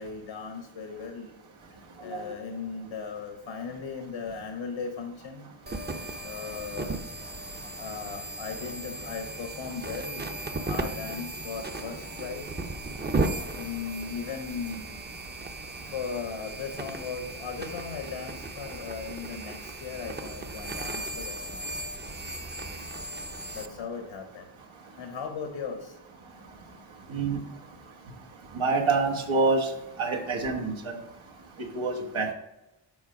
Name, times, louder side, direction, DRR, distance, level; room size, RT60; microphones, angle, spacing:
voice 1, 0.0-1.3 2.0-5.5 6.2-7.0 7.8-12.6 13.5-14.9 15.9-21.7 23.5-24.5 25.0-26.0, left 5 dB, 75° left, 4 dB, 1.0 m, -37 dB
sound 1, 5.7-23.7, right 2 dB, 20° right, 0.6 m, -36 dB
voice 2, 28.5-29.7 30.0-31.0 31.7-32.3, right 3 dB, 90° right, 0 dB, 1.4 m, -26 dB
7.2 x 4.2 x 5.2 m, 0.91 s
wide cardioid pair, 110°, 46 cm